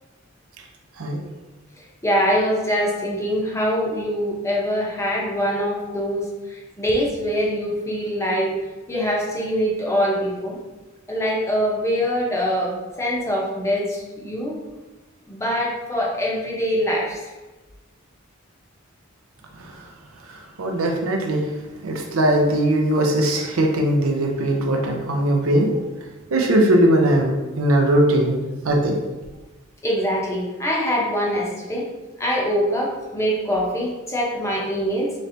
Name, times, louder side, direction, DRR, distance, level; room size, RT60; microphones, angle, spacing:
voice 1, 2.0-8.6 8.9-10.6 11.1-14.6 15.3-17.2 29.8-31.9 32.2-35.1, equal, 15° left, -3 dB, 0.7 m, -23 dB
voice 2, 20.3-21.4 21.8-25.7 26.3-28.4 28.6-29.0, right 1 dB, 80° right, 1 dB, 0.6 m, -20 dB
4.2 x 3.3 x 2.6 m, 1.2 s
head